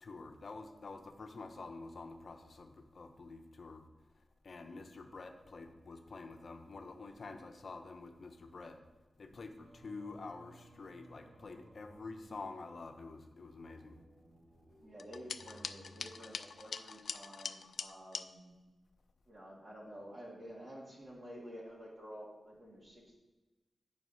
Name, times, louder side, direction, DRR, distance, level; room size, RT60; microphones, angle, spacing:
voice 1, 0.0-3.8 4.4-8.8 9.2-14.0, left 3 dB, 50° left, 6 dB, 0.8 m, -48 dB
Singing, 9.6-17.0, right 1 dB, 75° right, 1.8 m, -61 dB
voice 2, 14.8-18.5 19.3-23.2, equal, 40° right, -7 dB, 1.7 m, -51 dB
sound 1, 15.0-18.3, left 5 dB, 75° left, 0.3 m, -43 dB
8.3 x 4.7 x 5.5 m, 1.2 s
wide cardioid pair, 135°, 0 cm